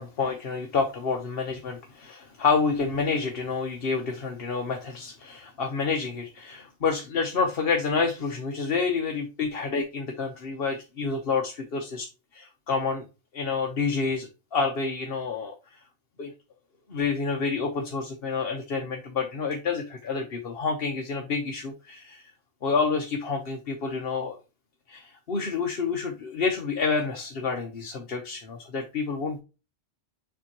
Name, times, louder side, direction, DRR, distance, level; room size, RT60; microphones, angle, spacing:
voice 1, 0.0-12.1 12.3-13.0 13.3-15.5 16.2-16.3 16.9-22.3 22.6-24.4 24.9-29.4, left 4 dB, 50° left, 1.1 m, -28 dB
7.2 x 4.5 x 2.9 m
omnidirectional pair, 1.3 m